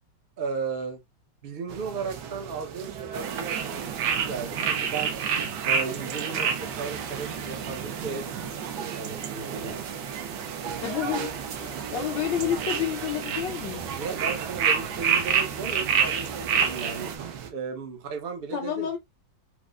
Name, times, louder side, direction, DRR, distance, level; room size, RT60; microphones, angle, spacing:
voice 1, 0.4-1.0 1.4-3.8 4.1-5.2 5.6-8.3 8.9-9.8 14.0-18.9, right 5 dB, 50° right, 0.6 m, -35 dB
sound 1, 1.7-17.5, right 7 dB, 90° right, 1.6 m, -39 dB
sound 2, 3.1-17.2, right 7 dB, 70° right, 1.1 m, -29 dB
voice 2, 10.8-11.3 11.6-13.9 18.5-19.0, left 9 dB, 70° left, 1.3 m, -29 dB
4.6 x 2.1 x 2.4 m
omnidirectional pair, 2.1 m